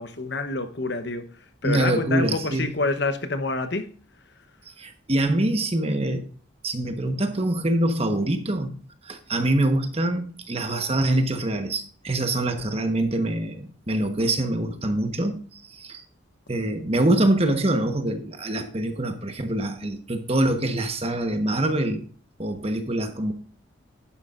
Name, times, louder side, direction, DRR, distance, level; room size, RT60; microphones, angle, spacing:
voice 1, 0.0-4.0, left 3 dB, 55° left, 0.9 m, -28 dB
voice 2, 1.6-2.7 4.8-6.2 6.6-8.8 9.0-16.0 16.5-22.0 22.4-23.3, right 1 dB, 30° right, 1.2 m, -24 dB
11.5 x 9.6 x 2.5 m
head